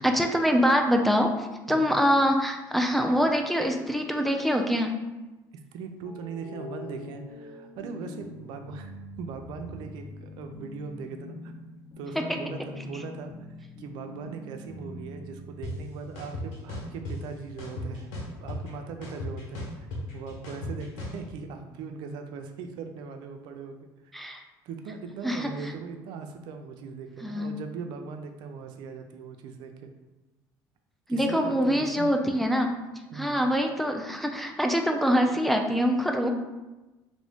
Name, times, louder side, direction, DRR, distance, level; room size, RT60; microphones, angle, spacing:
voice 1, 0.0-4.9 24.1-24.4 25.2-25.5 27.2-27.5 31.1-32.7 33.2-36.3, equal, ahead, 3 dB, 0.4 m, -24 dB
voice 2, 5.7-8.9 9.2-11.5 12.0-18.1 18.4-19.9 20.1-23.8 24.6-29.9 31.1-32.1 33.1-33.4, right 5 dB, 70° right, 5 dB, 0.4 m, -39 dB
sound 1, 6.0-16.2, left 2 dB, 45° left, 0.6 m, -43 dB
sound 2, 15.6-15.7 16.2-17.1 17.6-18.7 19.0-21.2, left 2 dB, 85° left, 1.0 m, -35 dB
3.4 x 2.6 x 3.4 m, 1.1 s
supercardioid pair, 105°, 8 cm